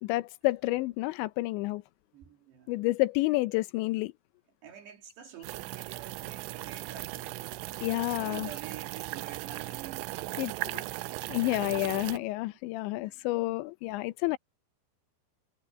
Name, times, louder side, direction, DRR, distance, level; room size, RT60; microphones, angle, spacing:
voice 1, 0.0-1.8 2.7-4.1 7.8-8.5 10.4-10.8 11.3-14.4, left 20 dB, 80° left, 3.1 m, -30 dB
voice 2, 2.1-2.9 4.6-7.4 7.9-12.0 13.0-13.3 14.0-14.1, right 9 dB, 70° right, 4.5 m, -49 dB
sound 1, 5.4-12.2, right 20 dB, 85° right, 2.9 m, -38 dB
omnidirectional pair, 5.3 m